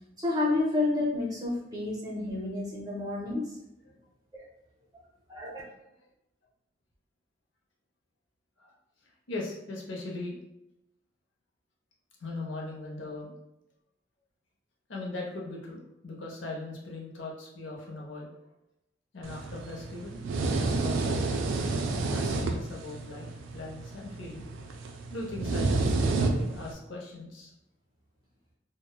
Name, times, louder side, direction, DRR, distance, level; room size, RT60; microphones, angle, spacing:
voice 1, 0.2-3.6 4.3-4.4 5.3-5.6, left 2 dB, 20° right, -5 dB, 0.5 m, -30 dB
voice 2, 9.0-10.4 12.2-13.3 14.9-18.3 19.1-20.2 20.5-21.5 22.1-24.5 25.1-27.5, left 2 dB, 75° left, -2 dB, 0.7 m, -39 dB
sound 1, 19.2-26.7, right 3 dB, 85° right, 0.3 m, -30 dB
2.9 x 2.1 x 2.2 m, 0.86 s
head